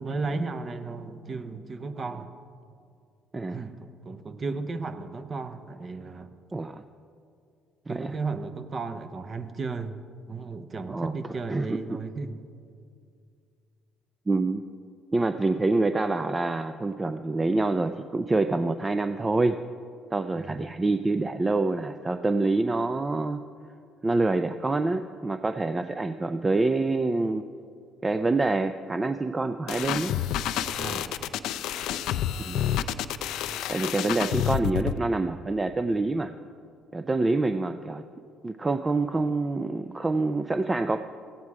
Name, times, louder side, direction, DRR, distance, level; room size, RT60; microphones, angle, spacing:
voice 1, 0.0-2.3 3.5-6.3 7.9-10.0 10.3-12.4 20.3-20.7 30.8-31.3 32.5-33.0, right 4 dB, 40° right, 9 dB, 0.8 m, -34 dB
voice 2, 6.5-6.8 7.9-8.2 10.9-11.1 11.5-11.8 14.3-14.6 15.1-19.6 20.1-23.4 24.0-27.4 28.0-30.1 32.4-32.7 33.7-36.3 36.9-38.0 38.4-41.0, right 3 dB, 20° right, 9 dB, 0.4 m, -26 dB
sound 1, 29.7-35.0, left 11 dB, 80° left, 0.4 m, -29 dB
15.0 x 9.3 x 4.8 m, 2.4 s
cardioid pair, 85°, 0 cm